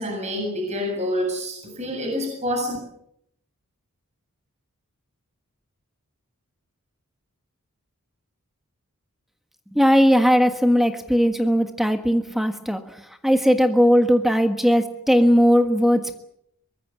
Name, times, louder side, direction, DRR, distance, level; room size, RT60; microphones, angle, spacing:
voice 1, 0.0-2.8, equal, 30° right, 2 dB, 7.6 m, -27 dB
voice 2, 9.7-12.8 13.2-16.2, equal, ahead, 6 dB, 1.5 m, -18 dB
24.0 x 21.0 x 7.5 m, 0.74 s
head